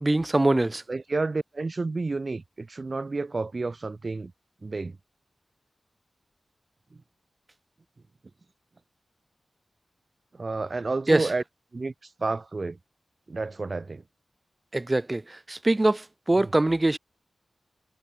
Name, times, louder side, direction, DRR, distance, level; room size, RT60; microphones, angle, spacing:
voice 1, 0.0-0.8 11.1-11.3 14.7-17.0, right 2 dB, 25° right, 1.1 m, -23 dB
voice 2, 0.9-4.3 4.6-5.0 10.3-11.4 11.7-11.9 12.2-12.8 13.3-14.0, right 3 dB, 45° right, 1.5 m, -30 dB
wide cardioid pair, 75°, 0 cm